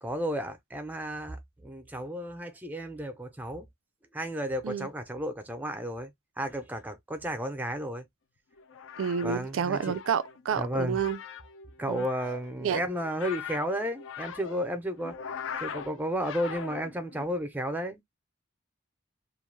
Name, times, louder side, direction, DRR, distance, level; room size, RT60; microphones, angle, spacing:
voice 1, 0.0-3.7 4.1-8.1 9.2-9.9 10.6-11.0 11.8-15.1 15.6-18.0, equal, 10° right, 0.5 m, -33 dB
sound 1, 8.6-17.3, left 7 dB, 75° left, 0.5 m, -42 dB
voice 2, 9.0-11.2 11.9-12.1 12.6-12.8, right 7 dB, 80° right, 0.4 m, -29 dB
2.4 x 2.2 x 3.1 m
head